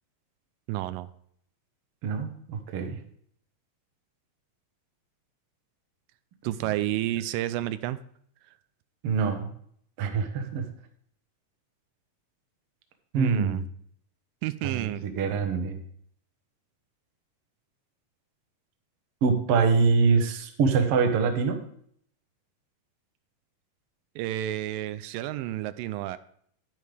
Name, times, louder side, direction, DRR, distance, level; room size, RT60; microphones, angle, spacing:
voice 1, 0.7-1.1 6.4-8.0 13.2-13.6 14.4-15.1 24.2-26.2, right 14 dB, 90° right, 13 dB, 2.3 m, -30 dB
voice 2, 2.0-3.0 9.0-9.5 10.0-10.7 13.1-13.6 14.6-15.8 19.2-21.6, right 5 dB, 60° right, 5 dB, 1.6 m, -24 dB
10.5 x 9.6 x 3.4 m, 0.65 s
omnidirectional pair, 3.9 m